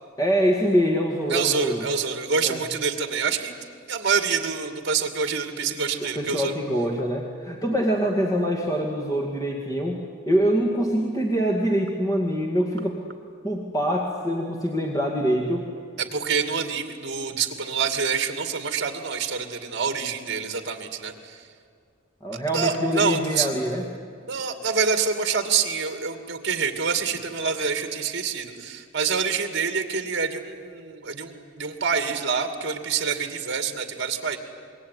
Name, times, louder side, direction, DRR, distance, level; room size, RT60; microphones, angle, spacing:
voice 1, 0.2-1.8 2.4-2.6 6.0-10.0 10.3-13.0 13.4-15.6 22.2-23.9, equal, 20° left, 0 dB, 2.1 m, -24 dB
voice 2, 1.3-3.5 3.9-6.6 16.0-21.4 22.5-23.5 24.3-34.4, right 5 dB, 55° right, 7 dB, 2.4 m, -26 dB
27.0 x 22.0 x 9.5 m, 2.2 s
head